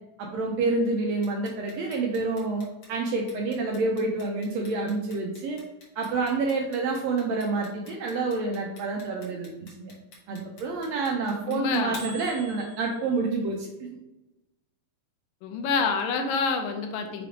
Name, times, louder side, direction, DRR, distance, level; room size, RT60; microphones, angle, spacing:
voice 1, 0.2-5.6 5.9-9.9 10.3-14.0, right 3 dB, 80° right, 0 dB, 1.5 m, -28 dB
Clock, 1.2-13.2, equal, 55° left, 2.3 m, -45 dB
voice 2, 11.5-12.0 15.4-17.3, left 5 dB, 80° left, 5 dB, 2.5 m, -27 dB
5.9 x 3.4 x 5.0 m, 0.97 s
omnidirectional pair, 4.0 m